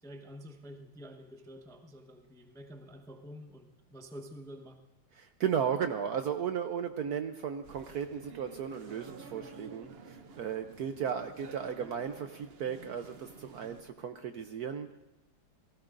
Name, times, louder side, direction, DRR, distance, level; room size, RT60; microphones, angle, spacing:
voice 1, 0.0-4.8, equal, 5° left, 4 dB, 0.5 m, -48 dB
voice 2, 5.2-15.0, right 8 dB, 65° right, 7 dB, 1.0 m, -35 dB
art gallery, 7.6-13.8, right 4 dB, 90° right, 0.5 m, -50 dB
29.0 x 19.0 x 2.6 m, 1.0 s
omnidirectional pair, 2.2 m